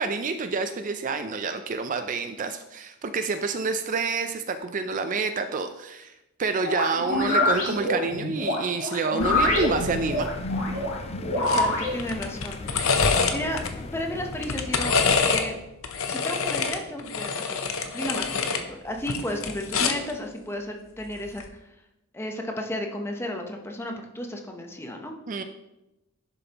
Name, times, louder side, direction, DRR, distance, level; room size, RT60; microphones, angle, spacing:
voice 1, 0.0-6.1 6.4-10.3 25.3-25.4, right 4 dB, 35° right, 9 dB, 0.4 m, -28 dB
sound 1, 6.6-11.9, left 1 dB, 80° left, 3.2 m, -25 dB
sound 2, 9.2-15.6, left 2 dB, 30° left, 0.4 m, -36 dB
voice 2, 11.3-12.8 13.3-13.6 13.9-15.0 15.2-15.6 16.1-21.4 22.1-25.4, left 1 dB, 10° left, 2 dB, 0.8 m, -33 dB
sound 3, 11.5-11.7 12.0-13.7 14.3-15.5 15.8-18.6 19.0-20.1 21.3-21.5, left 5 dB, 65° left, 0.8 m, -26 dB
11.0 x 6.7 x 3.0 m, 0.94 s
head